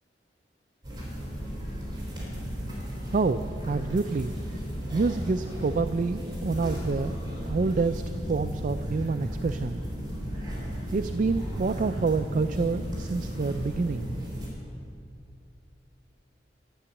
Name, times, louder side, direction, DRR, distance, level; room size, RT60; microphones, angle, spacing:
sound 1, 0.8-14.5, equal, 25° right, 4.1 m, -34 dB
voice 1, 3.1-4.3 4.9-7.2 7.5-8.0 8.3-9.8 10.9-14.1, right 4 dB, 45° right, 10 dB, 0.3 m, -27 dB
14.0 x 9.5 x 7.1 m, 2.6 s
head